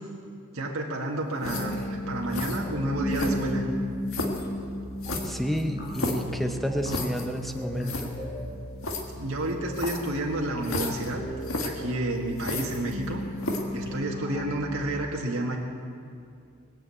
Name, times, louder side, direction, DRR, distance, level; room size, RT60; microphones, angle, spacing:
voice 1, 0.5-3.6 9.2-11.2 11.6-13.2 13.7-15.6, right 1 dB, 80° right, -1 dB, 1.8 m, -30 dB
sound 1, 1.4-1.8 2.3-2.6 3.1-3.6 4.1-4.5 5.0-6.3 6.9-7.3 7.6-7.7 7.8-8.1 8.8-9.0 9.7-10.1 10.6-11.1 11.4-11.7 12.4-13.1 13.4-13.8, left 2 dB, 75° left, 1.7 m, -32 dB
sound 2, 1.4-14.8, equal, 50° left, 4.2 m, -35 dB
voice 2, 5.2-8.1, equal, ahead, 6 dB, 0.8 m, -30 dB
21.5 x 7.6 x 8.4 m, 2.4 s
head